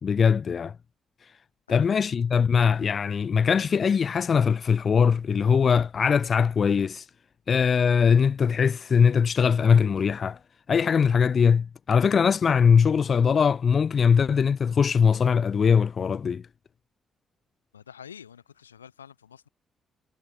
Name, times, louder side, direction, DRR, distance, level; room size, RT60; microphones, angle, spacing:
voice 1, 0.0-0.8 1.2-1.3 1.7-7.1 7.5-10.4 10.7-16.4, left 6 dB, 45° left, 0.8 m, -21 dB
voice 2, 17.7-19.5, left 8 dB, 90° left, 2.5 m, -47 dB
figure-of-eight pair, 40°, 0 cm